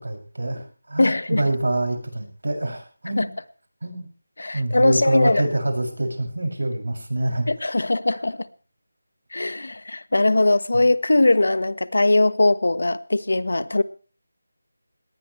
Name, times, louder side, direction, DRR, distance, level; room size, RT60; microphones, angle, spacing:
voice 1, 0.0-3.3 3.8-4.1 4.5-7.5 10.7-10.8, right 1 dB, 85° right, 5 dB, 7.0 m, -26 dB
voice 2, 1.0-1.4 3.2-3.3 4.4-5.4 7.5-8.5 9.3-13.8, left 2 dB, 80° left, 14 dB, 1.4 m, -20 dB
21.5 x 18.5 x 3.3 m, 0.38 s
figure-of-eight pair, 175°, 0 cm